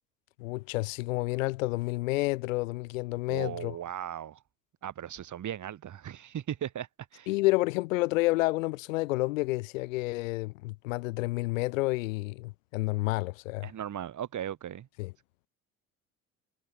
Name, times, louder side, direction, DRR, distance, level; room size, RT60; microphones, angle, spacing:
voice 1, 0.4-3.7 7.3-13.7 15.0-15.1, left 21 dB, 65° left, 0.7 m, -29 dB
voice 2, 3.3-4.4 4.8-7.3 13.6-14.9, right 10 dB, 45° right, 6.1 m, -37 dB
figure-of-eight pair, 55°, 42 cm